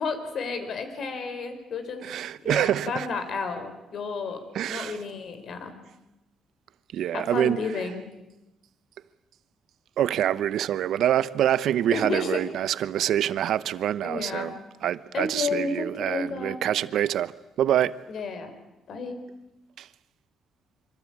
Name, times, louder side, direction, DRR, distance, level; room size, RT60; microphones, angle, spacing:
voice 1, 0.0-2.0 2.4-5.8 7.1-8.1 11.9-12.4 14.0-14.5 15.1-16.6 18.1-18.5 18.9-19.2, left 4 dB, 55° left, 4.5 m, -32 dB
voice 2, 2.0-3.1 4.5-5.0 6.9-7.6 10.0-14.5 14.8-17.3 17.6-18.0 19.8-19.9, right 11 dB, 70° right, 0.9 m, -25 dB
26.0 x 25.5 x 8.7 m
cardioid pair, 125°, 0 cm